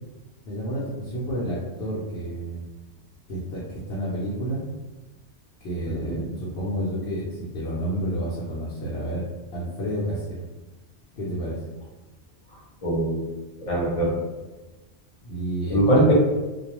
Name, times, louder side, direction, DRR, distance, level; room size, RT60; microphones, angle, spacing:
voice 1, 0.4-2.6 3.3-4.6 5.6-9.3 9.5-10.5 11.2-11.6 15.2-16.1, right 1 dB, 70° left, -7 dB, 0.9 m, -30 dB
voice 2, 12.8-13.3 13.6-14.1 15.7-16.1, right 1 dB, 35° left, -5 dB, 0.7 m, -21 dB
2.3 x 2.2 x 2.9 m, 1.1 s
omnidirectional pair, 1.1 m